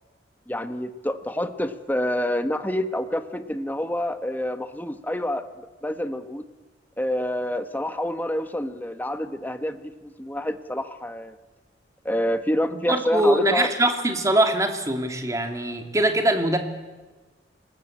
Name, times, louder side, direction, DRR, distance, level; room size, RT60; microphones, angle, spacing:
voice 1, 0.5-6.4 7.0-11.3 12.0-13.7, left 1 dB, 10° left, 9 dB, 1.3 m, -28 dB
voice 2, 12.9-16.6, right 1 dB, 20° right, 5 dB, 2.6 m, -22 dB
28.0 x 19.5 x 8.8 m, 1.3 s
head